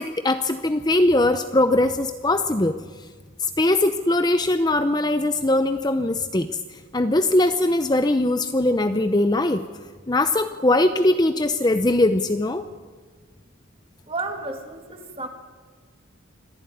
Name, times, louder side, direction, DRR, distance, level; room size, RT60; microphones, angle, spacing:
voice 1, 0.0-2.8 3.4-6.5 6.9-9.7 10.1-12.6, left 1 dB, 20° left, 9 dB, 0.6 m, -21 dB
voice 2, 14.1-15.3, right 3 dB, 25° right, 4 dB, 2.3 m, -32 dB
25.5 x 14.5 x 9.3 m, 1.5 s
head